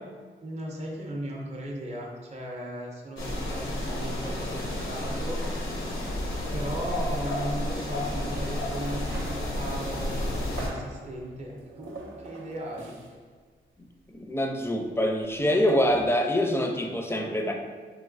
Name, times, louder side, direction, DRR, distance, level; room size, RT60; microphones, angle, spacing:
voice 1, 0.4-6.0 6.5-13.0, equal, 35° right, -1 dB, 0.6 m, -37 dB
sound 1, 3.2-10.7, left 1 dB, 75° left, 0.7 m, -31 dB
sound 2, 9.1-13.3 13.6-13.8 14.1-16.0, right 2 dB, 80° right, 0.4 m, -44 dB
voice 2, 14.1-17.5, equal, 10° left, 3 dB, 0.5 m, -25 dB
3.1 x 2.9 x 2.5 m, 1.5 s
cardioid pair, 45°, 20 cm